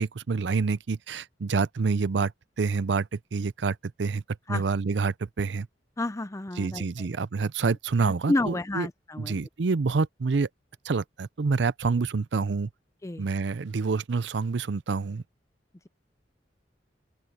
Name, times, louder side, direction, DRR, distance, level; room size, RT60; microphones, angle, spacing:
voice 1, 0.0-2.3 2.6-4.2 4.5-5.7 6.6-8.9 9.2-10.5 10.8-12.7 13.2-15.2, right 4 dB, 70° right, 0.5 m, -27 dB
voice 2, 6.0-6.9 7.1-7.2 8.0-9.4 13.0-13.3, left 2 dB, 15° left, 0.5 m, -30 dB
open air
head